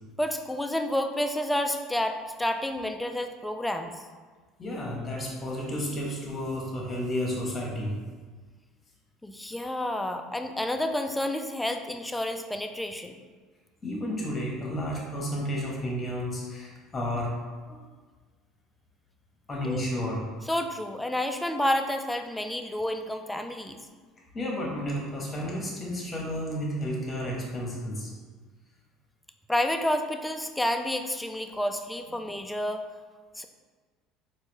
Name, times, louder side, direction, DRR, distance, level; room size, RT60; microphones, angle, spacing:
voice 1, 0.2-3.9 9.2-13.2 19.6-19.8 20.5-23.8 29.5-32.8 33.4-33.5, left 1 dB, 5° left, 6 dB, 0.3 m, -30 dB
voice 2, 4.6-8.0 13.8-17.4 17.7-17.8 19.5-20.3 24.3-28.1, equal, 25° left, -2 dB, 1.1 m, -32 dB
4.1 x 2.5 x 2.9 m, 1.4 s
supercardioid pair, 100°, 0 cm